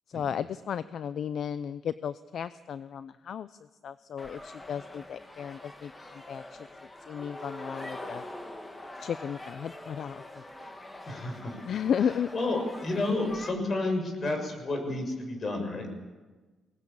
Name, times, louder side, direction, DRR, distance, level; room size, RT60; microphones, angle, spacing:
voice 1, 0.1-3.6 3.8-6.7 7.1-8.2 9.0-10.2 11.7-12.3, left 8 dB, 60° left, 14 dB, 0.6 m, -34 dB
sound 1, 4.2-13.5, left 1 dB, 20° left, 2.2 m, -44 dB
voice 2, 11.0-11.6 12.3-15.9, left 2 dB, 40° left, 4 dB, 6.7 m, -31 dB
22.5 x 18.5 x 8.7 m, 1.3 s
cardioid pair, 90°, 0 cm